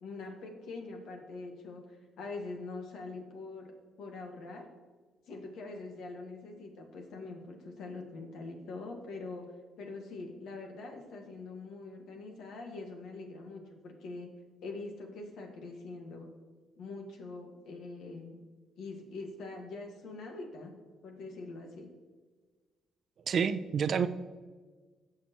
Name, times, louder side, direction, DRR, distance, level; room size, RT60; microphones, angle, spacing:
voice 1, 0.0-3.7 4.0-4.7 5.3-9.5 9.8-14.3 14.6-16.3 16.8-18.4 18.8-20.7 21.0-21.9, left 3 dB, 80° left, 2 dB, 1.8 m, -43 dB
voice 2, 23.3-24.1, right 7 dB, 55° right, 12 dB, 0.5 m, -28 dB
15.5 x 5.8 x 3.1 m, 1.4 s
cardioid pair, 90°, 0 cm